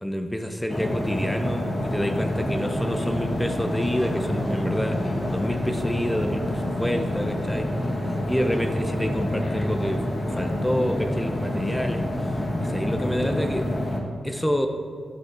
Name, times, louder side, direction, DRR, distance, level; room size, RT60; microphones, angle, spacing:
voice 1, 0.0-5.0 5.3-7.7 8.0-13.7 14.2-14.7, equal, 10° left, 6 dB, 0.7 m, -28 dB
sound 1, 0.7-14.0, left 1 dB, 30° left, 1.7 m, -27 dB
15.0 x 5.4 x 4.7 m, 2.3 s
cardioid pair, 70°, 0 cm